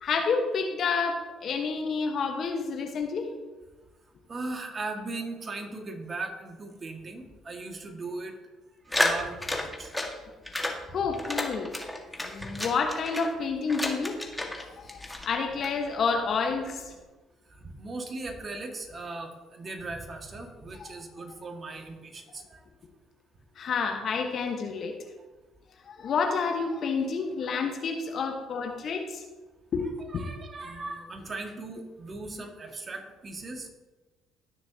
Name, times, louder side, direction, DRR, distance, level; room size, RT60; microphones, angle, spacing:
voice 1, 0.0-3.3 10.9-11.7 12.2-14.2 14.6-16.9 20.8-21.0 23.6-25.0 25.9-29.2 29.7-29.8 30.1-30.2, left 5 dB, 55° left, 4 dB, 1.3 m, -29 dB
voice 2, 4.3-8.4 8.9-9.9 12.4-12.5 17.5-22.6 27.4-27.6 28.7-28.8 30.0-33.7, right 3 dB, 40° right, 4 dB, 1.9 m, -38 dB
sound 1, 8.9-10.1 10.4-10.8 11.1-13.3 13.7-14.6 14.9-15.7, left 1 dB, 10° left, 1.7 m, -31 dB
18.0 x 6.6 x 2.9 m, 1.2 s
hypercardioid pair, 55°, 0 cm